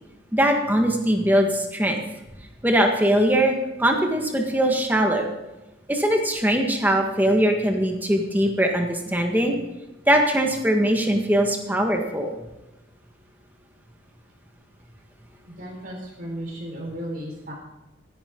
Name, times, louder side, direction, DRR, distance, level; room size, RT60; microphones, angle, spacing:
voice 1, 0.3-2.0 2.6-5.3 5.9-9.6 10.1-12.3, right 1 dB, 10° right, 2 dB, 1.7 m, -21 dB
voice 2, 15.5-17.5, right 1 dB, 50° right, -1 dB, 4.7 m, -35 dB
15.5 x 11.0 x 3.9 m, 1.0 s
head